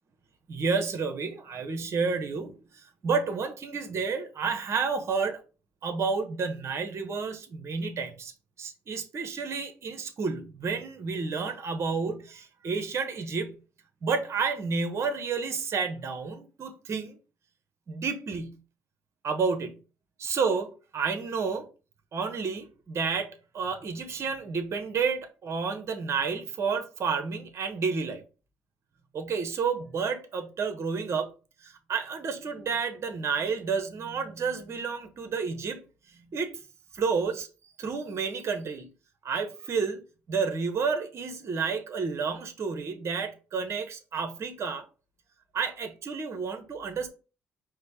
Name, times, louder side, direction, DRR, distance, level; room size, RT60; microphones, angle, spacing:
voice 1, 0.5-5.4 5.8-8.3 8.6-13.6 14.0-17.2 17.9-18.6 19.2-19.8 20.2-21.7 22.1-28.2 29.1-31.3 31.6-35.8 36.1-36.5 36.9-37.5 37.8-38.9 39.2-40.0 40.3-44.8 45.5-47.1, right 5 dB, 55° right, 1.0 m, -30 dB
5.0 x 2.2 x 4.6 m
supercardioid pair, 55°, 6 cm